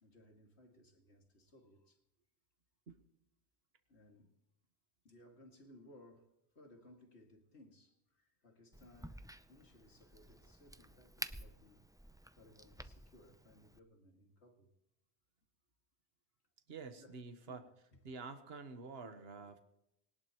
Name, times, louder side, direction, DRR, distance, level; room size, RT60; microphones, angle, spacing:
voice 1, 0.0-2.0 3.9-4.3 5.0-11.9 12.4-14.7 17.0-17.2 17.5-17.7, left 1 dB, 80° left, 2.6 m, -62 dB
Crack, 8.7-13.8, right 1 dB, 5° right, 0.3 m, -51 dB
voice 2, 16.7-17.7 18.0-19.6, right 4 dB, 70° right, 1.4 m, -48 dB
21.0 x 19.0 x 3.0 m
omnidirectional pair, 1.1 m